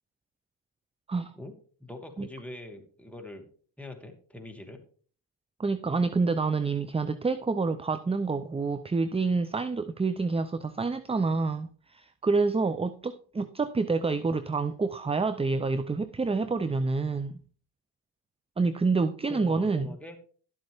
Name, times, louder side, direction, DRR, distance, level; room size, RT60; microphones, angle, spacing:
voice 1, 1.8-3.4 3.8-4.8 19.3-20.2, left 1 dB, 5° left, 2.4 m, -43 dB
voice 2, 5.6-17.4 18.6-19.9, right 4 dB, 15° right, 0.5 m, -28 dB
12.0 x 7.7 x 3.5 m
supercardioid pair, 65°, 43 cm